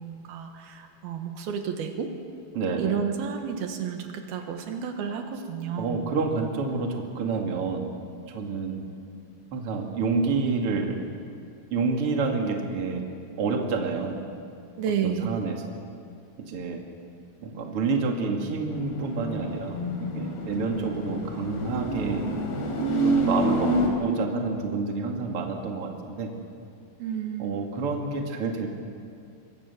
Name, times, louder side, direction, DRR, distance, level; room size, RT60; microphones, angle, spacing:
voice 1, 0.0-2.1 2.8-6.0 14.8-15.4 27.0-27.6, right 7 dB, 75° right, 5 dB, 3.2 m, -31 dB
voice 2, 2.5-2.9 5.8-8.8 9.5-11.0 11.7-13.0 13.4-14.2 15.0-15.8 16.4-16.8 17.4-22.2 23.0-23.7 24.0-26.3 27.4-28.7, right 4 dB, 40° right, 1 dB, 2.8 m, -28 dB
sound 1, 18.7-23.9, right 1 dB, 90° left, 5.2 m, -28 dB
26.0 x 22.5 x 7.0 m, 2.4 s
omnidirectional pair, 4.5 m